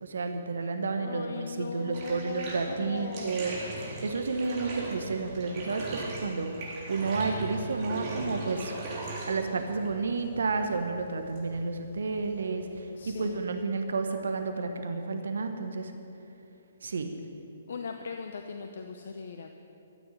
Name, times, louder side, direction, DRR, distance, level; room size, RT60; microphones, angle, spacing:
voice 1, 0.0-8.7 9.2-15.9 16.8-17.1, right 4 dB, 65° right, 6 dB, 1.1 m, -31 dB
voice 2, 1.0-3.4 9.5-9.6 13.0-13.4 17.7-19.5, left 5 dB, 60° left, 5 dB, 0.8 m, -39 dB
Bathtub (filling or washing), 1.9-13.5, right 2 dB, 30° right, 3.7 m, -40 dB
13.5 x 9.2 x 8.6 m, 2.8 s
figure-of-eight pair, 130°, 0 cm